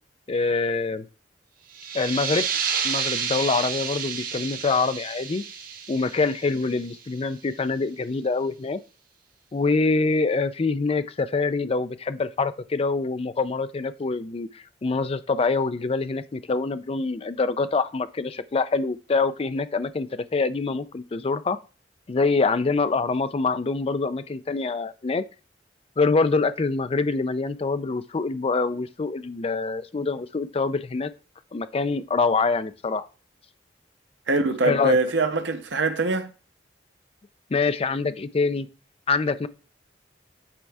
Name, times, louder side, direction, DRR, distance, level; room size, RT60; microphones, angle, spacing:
voice 1, 0.3-1.1 1.9-2.5 2.8-5.4 5.9-8.8 9.5-21.6 22.1-25.2 26.0-31.1 31.5-33.1 34.6-35.0 37.5-38.7 39.1-39.5, left 4 dB, 35° left, 0.4 m, -25 dB
sound 1, 1.7-7.1, right 7 dB, 55° right, 1.2 m, -30 dB
voice 2, 34.3-36.3, right 3 dB, 75° right, 0.8 m, -23 dB
8.7 x 4.5 x 3.4 m
head